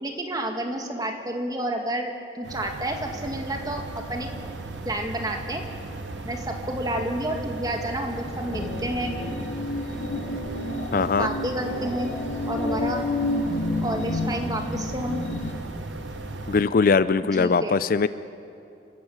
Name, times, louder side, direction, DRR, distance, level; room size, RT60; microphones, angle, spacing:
voice 1, 0.0-3.8 4.1-4.3 4.8-5.6 6.2-9.2 11.2-12.1 12.5-13.0 13.8-15.3 17.2-17.8, right 1 dB, 20° right, 3 dB, 2.0 m, -30 dB
sound 1, 2.4-16.7, right 3 dB, 90° right, 0.9 m, -38 dB
sound 2, 3.1-16.5, equal, ahead, 1.7 m, -42 dB
sound 3, 8.2-15.5, left 2 dB, 85° left, 2.6 m, -30 dB
voice 2, 10.9-11.3 16.5-18.1, left 4 dB, 50° left, 15 dB, 0.4 m, -21 dB
28.0 x 13.0 x 7.8 m, 2.8 s
head